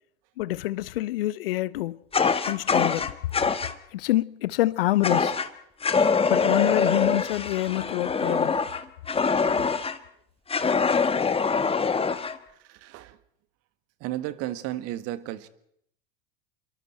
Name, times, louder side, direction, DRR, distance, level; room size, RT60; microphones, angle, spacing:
voice 1, 0.4-2.0 2.4-3.1 3.9-5.3 6.3-8.6, left 16 dB, 75° left, 0.8 m, -26 dB
Fire, 2.1-3.7 5.0-5.5 5.8-10.0 10.5-12.4, left 5 dB, 20° left, 1.5 m, -24 dB
voice 2, 11.8-12.2 12.6-13.2 14.0-15.5, right 14 dB, 55° right, 1.6 m, -34 dB
27.5 x 23.0 x 4.4 m
hypercardioid pair, 80°, 29 cm